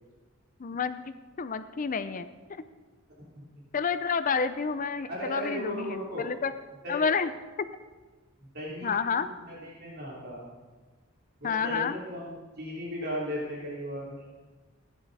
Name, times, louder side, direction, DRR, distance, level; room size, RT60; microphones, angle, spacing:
voice 1, 0.6-1.0 1.4-2.6 3.7-6.5 6.9-7.3 8.8-9.3 11.4-12.0, left 5 dB, 40° left, 12 dB, 0.5 m, -29 dB
voice 2, 5.1-6.2 6.8-7.0 8.4-10.5 11.4-14.2, equal, 50° right, -5 dB, 3.3 m, -36 dB
16.0 x 10.5 x 4.1 m, 1.3 s
head